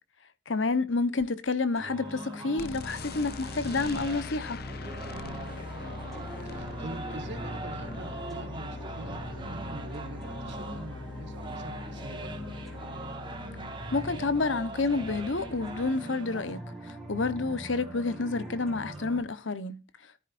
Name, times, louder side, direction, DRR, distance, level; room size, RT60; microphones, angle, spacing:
voice 1, 0.5-4.6 13.9-20.1, left 3 dB, 80° left, 1.1 m, -29 dB
sound 1, 1.8-19.2, right 1 dB, ahead, 4.7 m, -43 dB
sound 2, 1.8-16.4, right 3 dB, 25° right, 1.7 m, -44 dB
sound 3, 2.6-15.9, left 3 dB, 55° left, 0.7 m, -41 dB
voice 2, 4.9-5.2 6.5-12.8, right 2 dB, 65° right, 1.8 m, -45 dB
13.5 x 11.5 x 2.6 m
head